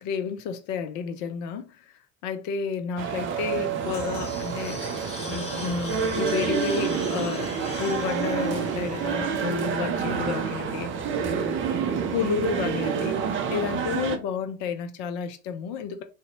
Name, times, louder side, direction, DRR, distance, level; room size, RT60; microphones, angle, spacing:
voice 1, 0.0-1.8 2.2-4.8 5.3-7.5 7.8-10.9 12.1-13.2 13.5-16.0, left 6 dB, 45° left, 0.5 m, -31 dB
sound 1, 3.0-14.2, right 6 dB, 30° right, 0.4 m, -28 dB
sound 2, 3.5-9.8, left 1 dB, 15° left, 1.2 m, -40 dB
2.6 x 2.0 x 2.7 m
figure-of-eight pair, 65°, 44 cm